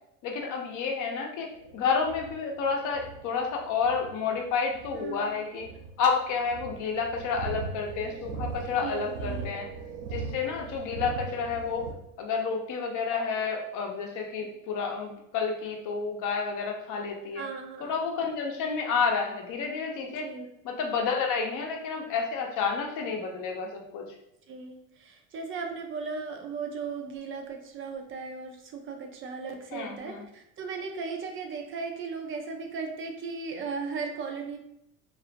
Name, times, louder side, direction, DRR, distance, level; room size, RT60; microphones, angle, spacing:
voice 1, 0.2-1.5 1.7-5.7 6.0-9.7 10.1-11.8 12.2-17.4 17.8-20.3 20.6-24.0 29.7-30.2, left 5 dB, 45° left, 2 dB, 0.7 m, -30 dB
sound 1, 1.5-11.9, right 5 dB, 90° right, 0.5 m, -40 dB
voice 2, 4.9-5.4 8.8-9.5 17.3-18.1 20.2-20.5 24.5-34.6, right 5 dB, 30° right, 3 dB, 0.4 m, -37 dB
2.4 x 2.0 x 2.7 m, 0.83 s
hypercardioid pair, 80°, 41 cm